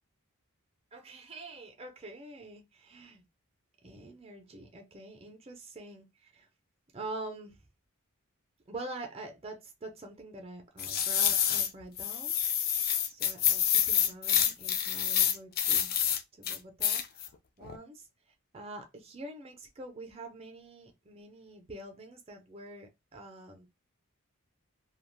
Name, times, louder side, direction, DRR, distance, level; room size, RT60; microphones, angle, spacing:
voice 1, 0.9-3.2 3.8-6.5 6.9-7.6 8.7-12.3 13.1-16.0 16.3-17.3 17.6-18.1 18.5-23.7, right 2 dB, 25° right, 0.6 m, -45 dB
sound 1, 10.8-11.7 12.0-16.2 16.4-17.3 17.6-17.8, left 9 dB, 45° left, 0.4 m, -27 dB
2.4 x 2.3 x 3.2 m
head